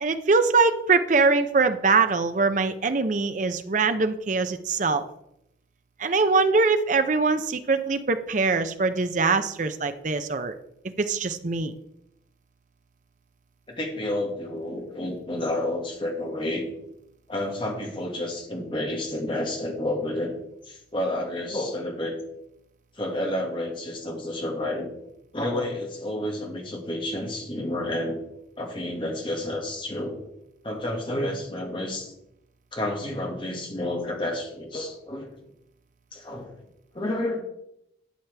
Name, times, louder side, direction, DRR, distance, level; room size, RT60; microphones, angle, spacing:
voice 1, 0.0-5.0 6.0-10.5 11.0-11.7, right 4 dB, 45° right, 9 dB, 0.6 m, -23 dB
voice 2, 13.7-16.7 17.3-20.3 20.7-22.2 23.0-24.9 25.3-28.2 28.6-30.2 30.6-32.1 32.7-35.3 36.1-36.5 36.9-37.4, left 1 dB, 30° left, 1 dB, 1.8 m, -30 dB
11.0 x 7.3 x 3.4 m, 0.80 s
head